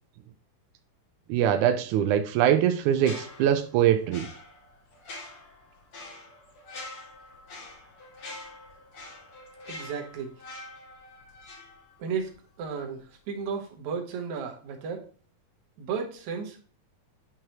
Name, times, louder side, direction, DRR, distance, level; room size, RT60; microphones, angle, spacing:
voice 1, 1.3-4.3, right 10 dB, 90° right, 7 dB, 1.7 m, -23 dB
sound 1, 2.9-12.3 12.6-12.8, left 2 dB, 45° left, 2.2 m, -45 dB
voice 2, 9.7-10.3 12.0-12.3 12.6-15.1 15.8-16.6, right 6 dB, 65° right, 2 dB, 2.2 m, -34 dB
9.9 x 4.7 x 2.9 m, 0.40 s
omnidirectional pair, 4.2 m